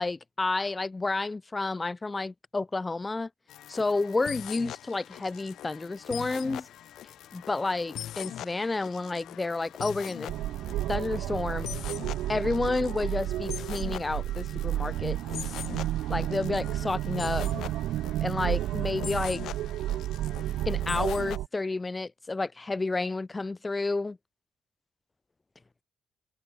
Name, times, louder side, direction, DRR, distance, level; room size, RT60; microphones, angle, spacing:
voice 1, 0.0-3.3 3.7-6.7 7.3-10.4 10.9-11.7 12.3-15.2 16.1-17.5 18.2-19.4 20.7-24.2, left 3 dB, 20° left, 0.4 m, -30 dB
sound 1, 3.5-21.4, left 12 dB, 75° left, 0.5 m, -42 dB
sound 2, 5.1-17.8, left 7 dB, 50° left, 7.6 m, -66 dB
sound 3, 10.3-21.5, right 14 dB, 85° right, 0.4 m, -31 dB
cardioid pair, 90°, 0 cm